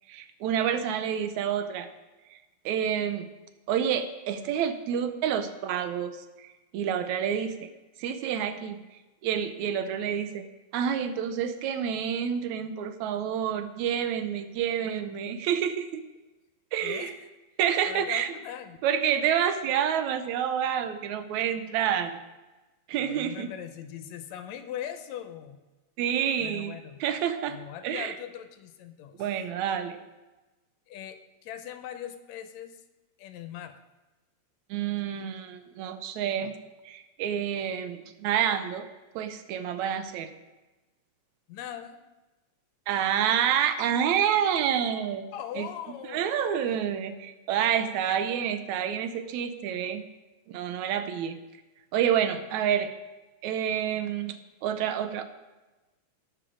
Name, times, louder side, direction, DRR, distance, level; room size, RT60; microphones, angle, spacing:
voice 1, 0.1-1.9 2.7-3.3 3.7-6.1 6.4-6.5 6.7-7.7 8.0-8.8 9.2-10.5 10.7-16.0 16.7-17.1 17.6-18.3 18.8-22.2 22.9-23.5 26.0-26.7 27.0-27.6 27.8-28.1 29.2-30.0 34.7-36.5 36.9-38.9 39.2-40.3 42.9-45.3 45.6-45.7 46.1-50.0 50.5-51.4 51.9-52.9 53.4-54.4 54.6-55.2, right 9 dB, 80° right, 10 dB, 2.0 m, -28 dB
voice 2, 16.8-17.3 17.9-18.8 23.0-25.6 26.4-27.0 27.5-29.3 30.9-32.8 33.2-33.8 41.5-42.0 45.3-46.5, left 10 dB, 80° left, 9 dB, 1.9 m, -40 dB
18.0 x 6.0 x 4.9 m, 1.1 s
omnidirectional pair, 3.4 m